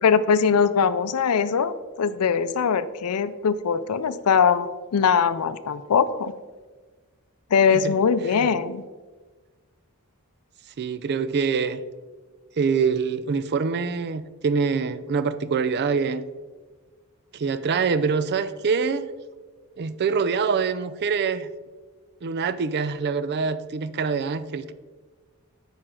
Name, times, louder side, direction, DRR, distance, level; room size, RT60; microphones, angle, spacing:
voice 1, 0.0-6.3 7.5-8.8, left 6 dB, 85° left, 14 dB, 0.5 m, -21 dB
voice 2, 10.8-11.8 12.6-16.2 17.3-19.1 19.8-21.5 22.2-24.7, right 5 dB, 50° right, 14 dB, 0.4 m, -25 dB
8.8 x 5.3 x 3.8 m, 1.3 s
head